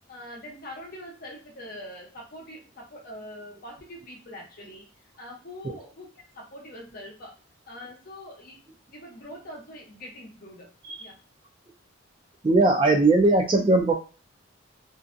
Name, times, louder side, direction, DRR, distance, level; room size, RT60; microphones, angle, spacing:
voice 1, 0.1-4.9 5.2-7.3 7.7-8.6 8.9-10.7 11.0-11.2, left 1 dB, 45° left, -2 dB, 0.7 m, -43 dB
voice 2, 12.4-13.9, right 2 dB, 25° right, 3 dB, 0.3 m, -19 dB
2.6 x 2.2 x 2.5 m, 0.35 s
head